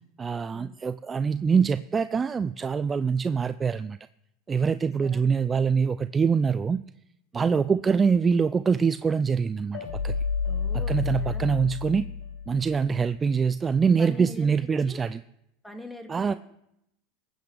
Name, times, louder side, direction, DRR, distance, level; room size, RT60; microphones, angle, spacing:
voice 1, 0.2-4.0 4.5-6.8 7.3-9.8 10.0-10.1 10.9-12.1 12.5-15.2 16.1-16.3, right 6 dB, 25° right, 14 dB, 0.3 m, -24 dB
voice 2, 4.8-5.2 7.3-7.6 10.5-11.5 14.0-14.5 14.8-15.0 15.6-16.1, left 1 dB, 5° left, 4 dB, 2.0 m, -42 dB
sound 1, 9.7-12.9, left 5 dB, 85° left, 1.7 m, -30 dB
21.0 x 8.8 x 3.4 m, 0.81 s
supercardioid pair, 105°, 0 cm